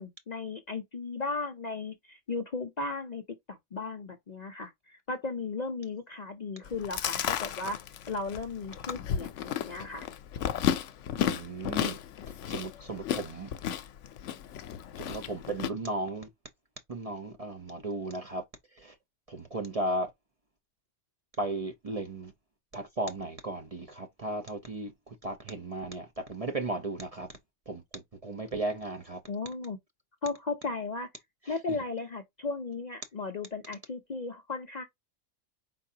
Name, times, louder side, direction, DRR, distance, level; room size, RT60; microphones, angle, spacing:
voice 1, 0.0-7.8 8.1-10.1 29.3-29.8 30.2-31.1 31.5-34.8, left 3 dB, 45° left, 0.6 m, -36 dB
Chewing mastication, 6.7-15.7, left 10 dB, 80° left, 0.9 m, -33 dB
voice 2, 11.2-12.0 12.5-13.5 15.0-16.3 16.9-18.4 18.7-18.9 19.3-20.1 21.4-22.3 22.7-27.3 27.7-29.2 31.5-31.6, right 2 dB, 35° right, 0.7 m, -35 dB
4.6 x 3.9 x 2.7 m
omnidirectional pair, 1.3 m